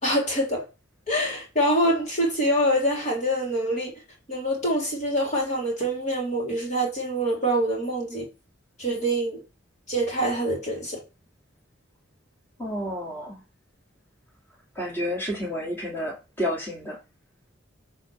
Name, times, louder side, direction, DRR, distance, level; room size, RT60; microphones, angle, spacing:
voice 1, 0.0-0.6 1.1-3.9 4.3-8.3 8.8-9.4 9.9-11.0, right 1 dB, 35° left, 3.3 m, -25 dB
voice 2, 12.6-13.4 14.7-17.0, equal, 10° left, 2.4 m, -30 dB
8.8 x 3.7 x 6.3 m
head